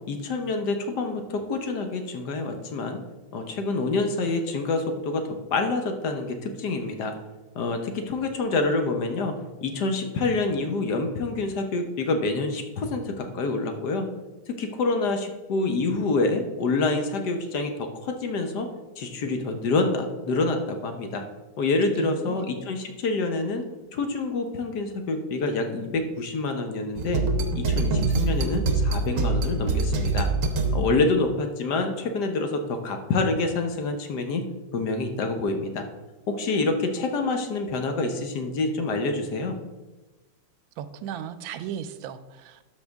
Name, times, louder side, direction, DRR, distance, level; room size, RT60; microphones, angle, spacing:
voice 1, 0.1-3.0 3.3-5.2 5.5-7.1 7.5-9.4 9.6-14.0 14.5-18.7 19.0-21.2 21.6-23.6 23.9-27.2 27.6-30.3 30.7-34.4 34.7-35.8 36.3-39.6, left 3 dB, 65° left, 6 dB, 1.3 m, -27 dB
voice 2, 22.0-22.4 40.8-42.6, right 9 dB, 85° right, 12 dB, 1.3 m, -36 dB
sound 1, 27.0-31.1, right 3 dB, 55° right, 1.0 m, -24 dB
12.5 x 5.1 x 3.5 m, 1.2 s
omnidirectional pair, 2.1 m